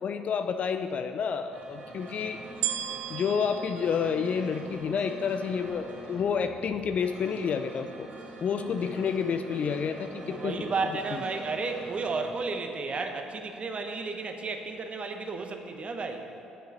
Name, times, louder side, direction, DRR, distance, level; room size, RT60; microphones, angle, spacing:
voice 1, 0.0-2.4 3.1-8.1 8.4-10.7 11.1-11.2, left 6 dB, 50° left, 9 dB, 0.4 m, -29 dB
sound 1, 1.5-12.3, right 3 dB, 55° right, 2.1 m, -45 dB
sound 2, 2.6-5.0 5.7-5.8, right 11 dB, 75° right, 0.4 m, -35 dB
voice 2, 10.3-16.3, right 4 dB, 40° right, 5 dB, 1.0 m, -33 dB
7.7 x 6.5 x 6.6 m, 2.7 s
hypercardioid pair, 50°, 3 cm